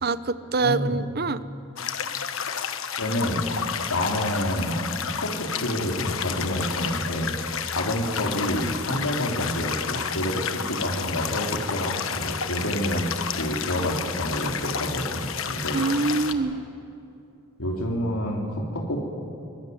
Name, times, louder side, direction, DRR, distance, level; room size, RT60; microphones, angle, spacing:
voice 1, 0.0-1.4 15.7-16.6, right 3 dB, 45° right, 14 dB, 0.8 m, -25 dB
voice 2, 0.6-1.0 2.5-2.6 3.0-7.4 7.6-15.8 17.6-19.0, equal, 85° left, -1 dB, 3.4 m, -28 dB
sound 1, 1.8-16.3, left 7 dB, 65° left, 1.3 m, -31 dB
23.5 x 21.0 x 9.5 m, 2.7 s
head